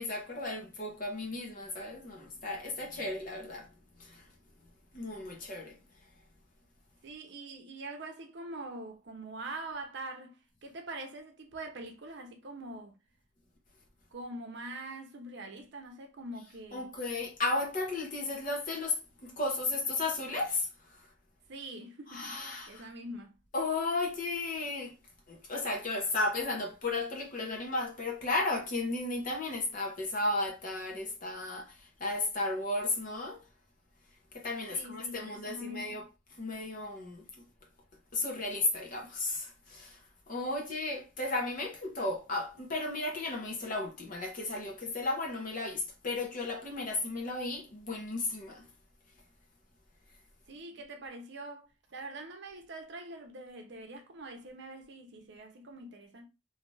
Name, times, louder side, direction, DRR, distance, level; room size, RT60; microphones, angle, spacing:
voice 1, 0.0-3.7 4.0-4.3 4.9-5.8 16.7-21.1 22.1-22.9 23.5-25.0 25.3-33.4 34.3-36.0 36.4-37.3 38.1-40.0 40.3-48.7, left 2 dB, 45° left, 0.8 m, -34 dB
voice 2, 7.0-13.0 14.1-16.9 21.5-23.4 34.7-36.0 50.5-56.3, right 2 dB, 60° right, 0.7 m, -44 dB
2.8 x 2.4 x 3.1 m
head